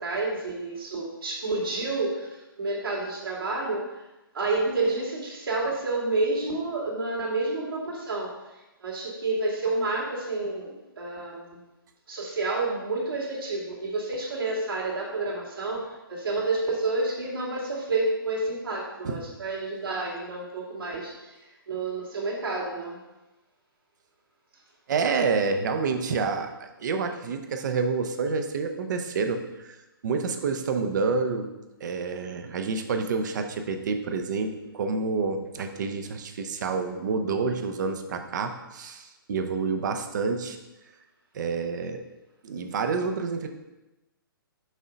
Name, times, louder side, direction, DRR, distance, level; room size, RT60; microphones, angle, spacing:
voice 1, 0.0-3.8 4.3-8.3 8.8-11.6 12.1-15.8 16.1-21.4 21.7-23.0, right 2 dB, 70° right, -3 dB, 2.3 m, -29 dB
voice 2, 24.9-29.8 30.0-31.5 31.8-40.6 41.3-42.0 42.4-43.5, right 4 dB, 55° right, 6 dB, 0.8 m, -28 dB
6.4 x 3.9 x 5.1 m, 1.0 s
figure-of-eight pair, 135°, 12 cm